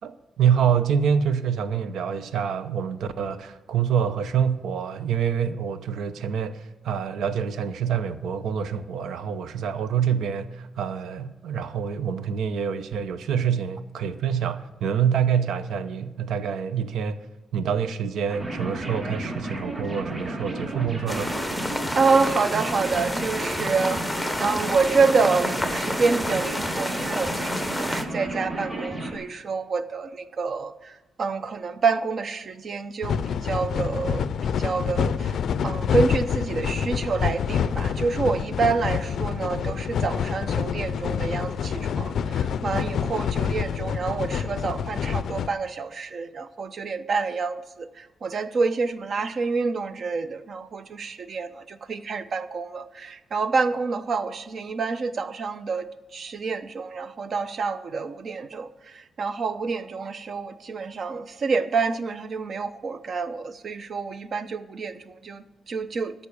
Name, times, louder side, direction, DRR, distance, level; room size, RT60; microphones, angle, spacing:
voice 1, 0.0-17.2 17.5-21.3, right 7 dB, 85° right, 0.8 m, -26 dB
sound 1, 18.3-29.1, right 1 dB, 20° right, 2.8 m, -33 dB
sound 2, 21.1-28.0, left 1 dB, ahead, 0.8 m, -30 dB
voice 2, 22.0-24.1 24.4-35.4 35.6-66.3, right 4 dB, 45° right, 0.7 m, -27 dB
sound 3, 33.0-45.5, left 7 dB, 65° left, 0.4 m, -27 dB
13.5 x 5.5 x 8.4 m
wide cardioid pair, 160°, 0 cm